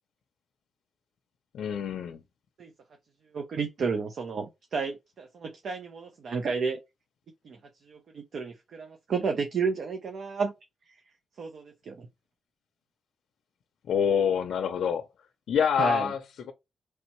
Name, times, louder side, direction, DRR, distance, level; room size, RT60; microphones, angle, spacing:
voice 1, 1.5-2.2 13.9-15.0 15.5-16.2, left 7 dB, 80° left, 0.5 m, -26 dB
voice 2, 3.3-6.8 7.4-7.6 7.9-10.5 11.4-12.1 15.8-16.1, right 5 dB, 60° right, 0.6 m, -31 dB
4.2 x 3.2 x 3.0 m
cardioid pair, 120°, 0 cm